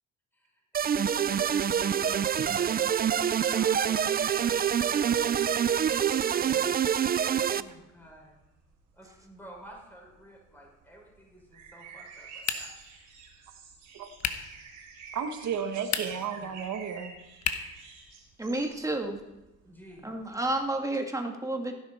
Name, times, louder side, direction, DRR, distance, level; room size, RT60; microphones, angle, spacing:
voice 1, 0.3-6.8 7.4-8.4 8.9-12.3 12.5-12.7 16.1-16.5 19.6-20.1, right 1 dB, 5° left, -2 dB, 5.8 m, -50 dB
sound 1, 0.7-7.6, right 8 dB, 30° right, 0.4 m, -26 dB
sound 2, 4.0-20.7, right 5 dB, 90° right, 3.7 m, -50 dB
sound 3, 12.4-12.9 14.2-14.6 15.8-16.3 17.4-17.8, left 8 dB, 65° left, 1.2 m, -32 dB
voice 2, 15.1-17.1, right 7 dB, 70° right, 7 dB, 1.5 m, -33 dB
voice 3, 18.4-19.2 20.0-21.7, right 2 dB, 10° right, 2 dB, 2.0 m, -30 dB
15.5 x 10.5 x 4.4 m, 1.0 s
cardioid pair, 90°, 30 cm